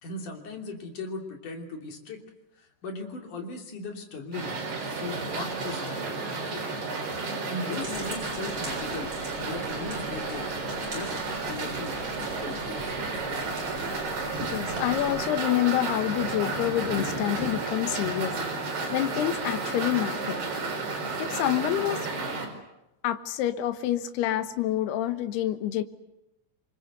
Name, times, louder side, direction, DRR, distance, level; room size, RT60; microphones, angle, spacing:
voice 1, 0.0-2.2 2.6-4.6 5.0-6.1 7.4-9.1 9.4-10.5 10.9-11.2 11.4-12.0 12.4-13.4, left 3 dB, 50° left, 3 dB, 4.3 m, -38 dB
sound 1, 4.3-22.5, right 3 dB, 65° right, 6.8 m, -32 dB
sound 2, 7.8-15.3, right 1 dB, 25° right, 8.1 m, -43 dB
voice 2, 14.4-18.4 18.9-20.4 21.2-22.1 23.0-25.8, left 13 dB, 70° left, 10 dB, 3.1 m, -27 dB
27.5 x 24.0 x 8.0 m, 0.91 s
omnidirectional pair, 5.0 m